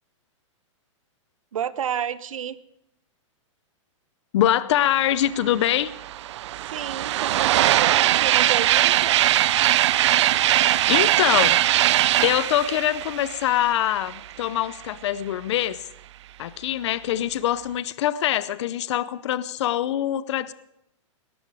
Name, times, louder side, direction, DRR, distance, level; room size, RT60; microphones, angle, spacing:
voice 1, 1.5-2.6 6.6-9.2, right 9 dB, 85° right, 17 dB, 0.9 m, -31 dB
voice 2, 4.3-5.9 10.5-11.6 11.9-15.8 16.4-20.5, left 12 dB, 60° left, 17 dB, 0.7 m, -24 dB
sound 1, 5.4-5.5 5.7-14.3, right 13 dB, 60° right, 0.5 m, -21 dB
18.5 x 13.5 x 4.9 m, 0.82 s
hypercardioid pair, 150°, 17 cm